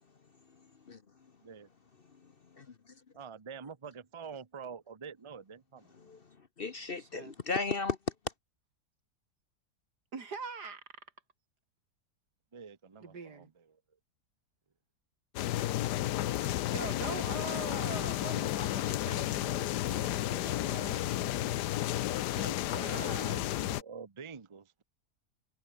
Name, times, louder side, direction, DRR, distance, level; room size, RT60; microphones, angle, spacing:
voice 1, 2.2-2.9 6.0-6.3 6.6-8.0, left 4 dB, 40° left, 1.0 m, -36 dB
voice 2, 3.1-5.9 12.5-13.8 22.3-24.8, right 6 dB, 25° right, 0.8 m, -47 dB
voice 3, 7.0-7.3 10.1-10.8 13.0-13.5 16.7-21.1 22.7-23.5, right 5 dB, 85° right, 3.2 m, -43 dB
sound 1, 15.4-23.8, left 14 dB, 90° left, 1.3 m, -32 dB
omnidirectional pair, 1.7 m